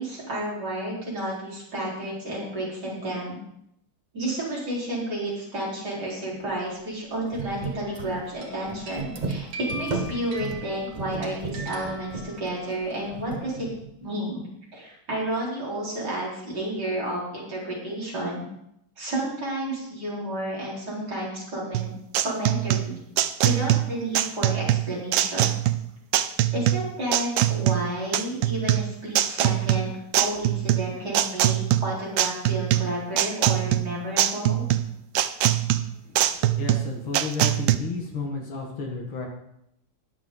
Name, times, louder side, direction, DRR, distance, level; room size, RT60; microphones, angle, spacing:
voice 1, 0.0-3.4 4.1-13.7 14.0-14.5 14.7-18.5 19.0-21.9 22.2-23.0 23.4-25.5 26.5-34.6, right 1 dB, 50° right, -6 dB, 4.9 m, -31 dB
sound 1, 6.3-6.5 6.8-6.9 7.2-14.0, right 4 dB, 30° right, 0.8 m, -35 dB
sound 2, 7.8-8.1 8.4-12.8, right 1 dB, 90° right, 2.9 m, -41 dB
sound 3, 21.7-37.8, right 13 dB, 70° right, 1.2 m, -23 dB
voice 2, 36.0-39.3, left 3 dB, 75° left, 0 dB, 2.5 m, -32 dB
20.5 x 6.9 x 3.9 m, 0.78 s
omnidirectional pair, 2.3 m